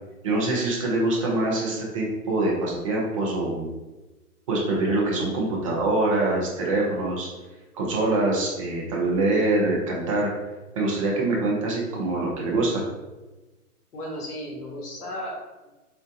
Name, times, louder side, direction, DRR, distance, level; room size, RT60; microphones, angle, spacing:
voice 1, 0.2-3.7 4.5-7.3 7.7-10.3 10.8-12.8, right 2 dB, 25° right, -3 dB, 0.4 m, -24 dB
voice 2, 13.9-15.7, equal, 75° left, -3 dB, 1.3 m, -35 dB
3.9 x 2.1 x 2.6 m, 1.1 s
hypercardioid pair, 130°, 46 cm